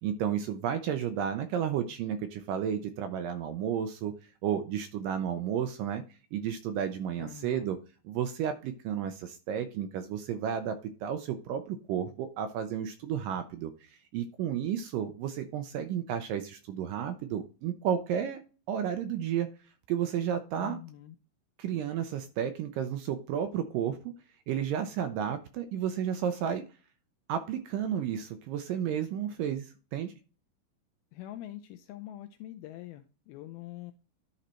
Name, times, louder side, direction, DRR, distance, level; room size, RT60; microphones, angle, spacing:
voice 1, 0.0-4.1 4.4-6.0 6.3-7.8 8.1-18.4 18.7-19.5 19.9-20.8 21.6-24.0 24.5-26.6 27.3-30.1, right 9 dB, 80° right, 8 dB, 1.9 m, -32 dB
voice 2, 7.2-7.7 20.6-21.2 31.1-33.9, left 13 dB, 80° left, 8 dB, 2.3 m, -44 dB
11.5 x 4.0 x 4.3 m, 0.35 s
omnidirectional pair, 4.6 m